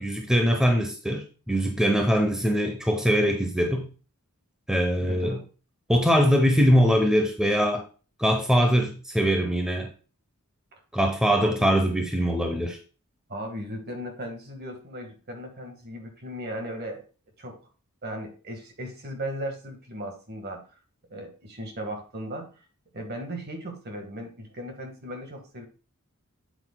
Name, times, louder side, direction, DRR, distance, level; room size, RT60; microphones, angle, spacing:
voice 1, 0.0-3.9 4.7-5.4 5.9-7.8 8.2-9.9 10.9-12.8, equal, 5° right, 3 dB, 0.7 m, -22 dB
voice 2, 5.0-5.4 11.3-11.7 13.3-17.0 17.4-17.6 18.0-20.6 21.1-22.5 22.9-25.6, equal, 45° right, 4 dB, 1.7 m, -36 dB
8.2 x 8.2 x 2.3 m, 0.35 s
head